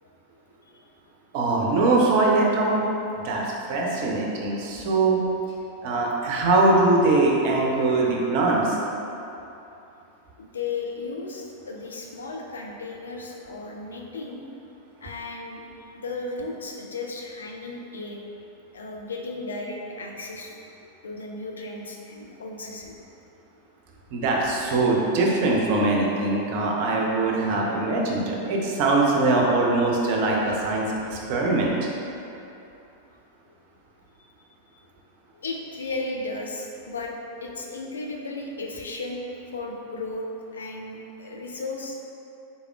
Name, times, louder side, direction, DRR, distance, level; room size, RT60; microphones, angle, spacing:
voice 1, 0.0-0.9 5.7-5.8 10.4-14.5 15.0-15.6 15.9-18.2 18.7-20.6 21.0-23.0 35.3-37.1 37.4-39.2 39.5-41.9, left 3 dB, 70° left, 0 dB, 0.4 m, -35 dB
voice 2, 1.3-2.8 3.2-5.2 5.8-8.8 24.1-31.7, right 2 dB, 50° right, -2 dB, 0.5 m, -22 dB
4.0 x 3.4 x 2.3 m, 2.8 s
figure-of-eight pair, 90°, 0 cm